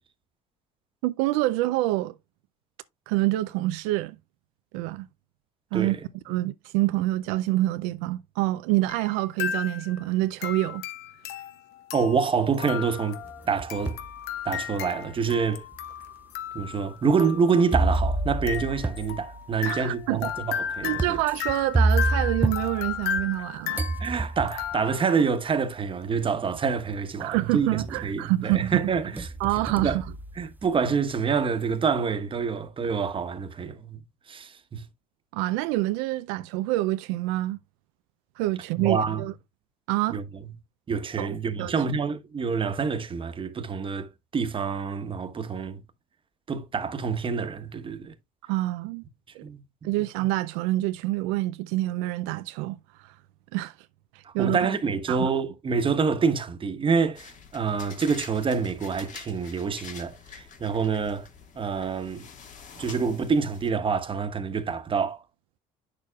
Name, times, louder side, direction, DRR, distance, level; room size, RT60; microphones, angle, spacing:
voice 1, 1.0-2.2 3.1-4.2 4.7-5.1 5.7-6.0 6.3-10.8 19.6-20.3 20.8-23.8 27.2-28.8 29.4-30.0 35.3-37.6 38.4-39.3 39.9-40.2 41.2-41.3 41.6-41.7 48.5-49.0 49.4-49.5 49.8-52.8 53.0-53.1 53.5-53.7 54.1-54.6 55.1-55.3, right 17 dB, 85° right, 0.4 m, -26 dB
voice 2, 5.7-6.4 11.9-13.2 13.5-14.0 14.4-15.6 16.5-21.2 24.0-29.3 29.8-30.0 30.4-34.0 34.3-34.8 38.8-39.2 40.1-40.2 40.9-45.8 46.5-48.1 49.4-49.6 54.2-61.3 61.6-62.3 62.8-65.2, right 5 dB, 30° right, 1.1 m, -27 dB
sound 1, 8.9-9.1 9.4-10.0 10.4-25.3, left 9 dB, 75° left, 1.0 m, -35 dB
sound 2, 13.2-14.1 14.7-14.8 15.7-15.8 17.7-23.4 23.7-24.8 25.9-26.0 26.5-27.0 27.3-28.1 28.5-30.9, right 2 dB, 10° right, 0.4 m, -29 dB
sound 3, 57.2-63.7, left 6 dB, 50° left, 1.7 m, -46 dB
8.3 x 6.7 x 2.3 m
supercardioid pair, 90°, 17 cm